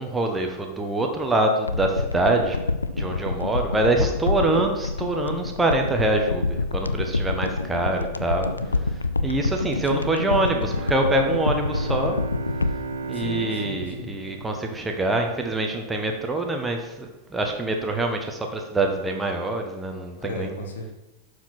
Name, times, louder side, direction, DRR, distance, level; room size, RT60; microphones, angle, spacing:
voice 1, 0.0-2.6 2.9-8.5 9.2-12.2 13.1-20.5, right 2 dB, 10° right, 2 dB, 1.3 m, -25 dB
sound 1, 1.7-14.1 14.4-14.5, left 3 dB, 80° left, 0.4 m, -27 dB
voice 2, 8.3-8.8 9.8-10.8 13.0-14.1 20.2-20.9, left 2 dB, 65° left, 4 dB, 1.4 m, -36 dB
Bowed string instrument, 10.4-15.5, right 4 dB, 65° right, 1.1 m, -35 dB
11.5 x 4.9 x 4.4 m, 1.0 s
figure-of-eight pair, 90°, 0 cm